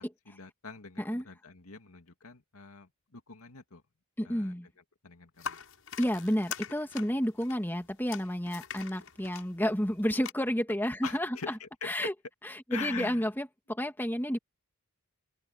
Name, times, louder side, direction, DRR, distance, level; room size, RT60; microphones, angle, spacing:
voice 1, 0.0-3.8 4.2-4.5 5.0-5.6 11.0-12.1 12.7-13.2, left 5 dB, 85° left, 2.3 m, -43 dB
voice 2, 4.2-4.7 6.0-11.5 11.8-12.1 12.4-14.4, equal, 10° left, 2.4 m, -31 dB
sound 1, 5.4-10.3, left 7 dB, 70° left, 7.4 m, -43 dB
open air
head